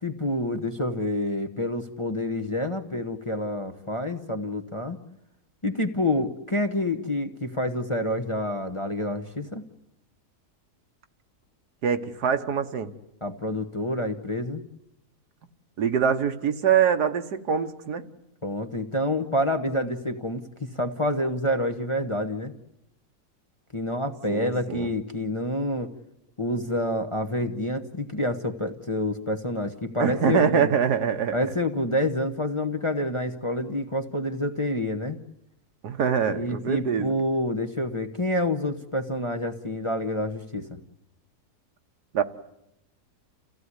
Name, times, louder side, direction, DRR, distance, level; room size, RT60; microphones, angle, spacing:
voice 1, 0.0-5.0 5.6-9.6 13.2-14.6 18.4-22.5 23.7-25.9 26.4-30.7 31.3-35.2 36.2-40.8, left 1 dB, 20° left, 5 dB, 1.0 m, -28 dB
voice 2, 11.8-12.9 15.8-18.0 24.3-24.9 30.0-31.4 35.8-37.1 42.1-42.2, right 7 dB, 80° right, 8 dB, 1.8 m, -24 dB
29.0 x 16.5 x 9.7 m, 0.85 s
omnidirectional pair, 1.7 m